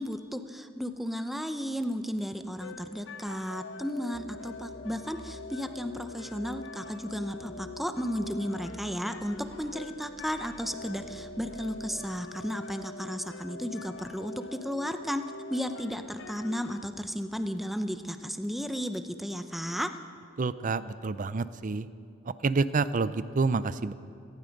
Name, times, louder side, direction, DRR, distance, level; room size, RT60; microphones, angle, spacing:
voice 1, 0.0-15.2 15.5-19.9, equal, ahead, 8 dB, 0.7 m, -34 dB
sound 1, 2.6-16.8, left 3 dB, 75° left, 0.9 m, -44 dB
sound 2, 4.1-12.0, equal, 15° left, 1.7 m, -52 dB
voice 2, 20.4-21.9 22.3-23.9, right 4 dB, 45° right, 15 dB, 0.5 m, -28 dB
18.0 x 15.5 x 5.3 m, 2.3 s
head